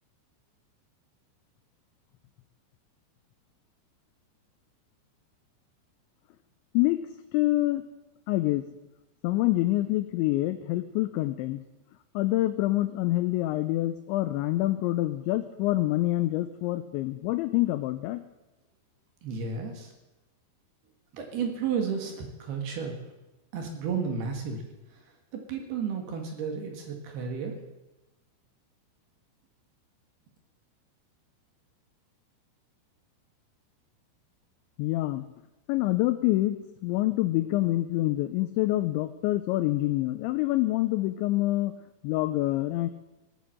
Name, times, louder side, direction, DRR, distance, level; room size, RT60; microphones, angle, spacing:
voice 1, 7.3-7.8 8.3-8.6 9.2-11.6 12.1-18.2 34.8-35.3 35.7-41.7 42.0-42.9, left 17 dB, 80° left, 10 dB, 2.8 m, -26 dB
voice 2, 19.2-19.9 21.1-23.0 23.5-25.0 25.5-27.6, right 6 dB, 60° right, 3 dB, 3.3 m, -32 dB
18.0 x 8.5 x 7.6 m, 1.0 s
omnidirectional pair, 5.6 m